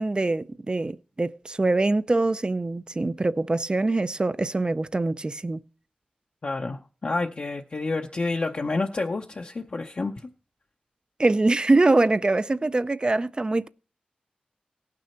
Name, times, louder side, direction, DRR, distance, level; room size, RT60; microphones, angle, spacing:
voice 1, 0.0-5.6 11.2-13.7, right 2 dB, 35° right, 0.4 m, -23 dB
voice 2, 6.4-10.1, left 3 dB, 55° left, 0.7 m, -29 dB
17.5 x 6.1 x 4.3 m
wide cardioid pair, 60°, 3 cm